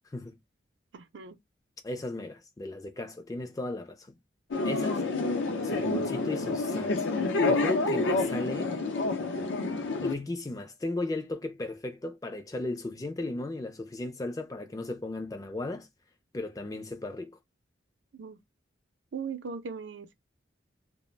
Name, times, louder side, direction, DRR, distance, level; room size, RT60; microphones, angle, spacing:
voice 1, 0.9-1.4 5.9-6.0 18.1-18.4 19.1-20.1, right 6 dB, 80° right, 0.5 m, -38 dB
voice 2, 1.8-4.1 4.6-5.0 5.6-7.1 7.5-8.8 10.0-15.9 16.3-17.4, left 2 dB, 20° left, 0.3 m, -36 dB
sound 1, 4.5-10.1, left 3 dB, 85° left, 0.5 m, -28 dB
2.4 x 2.0 x 3.1 m
head